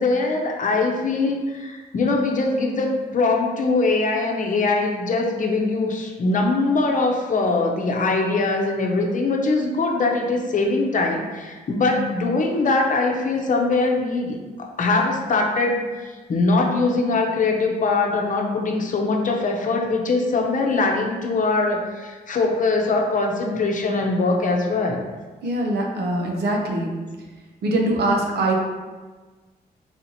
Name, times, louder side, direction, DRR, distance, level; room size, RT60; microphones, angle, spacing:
voice 1, 0.0-25.0, left 3 dB, 55° left, 1 dB, 0.8 m, -22 dB
voice 2, 25.4-26.9 27.6-28.5, right 1 dB, 85° right, 0 dB, 0.8 m, -22 dB
4.2 x 2.9 x 4.1 m, 1.3 s
cardioid pair, 110°, 16 cm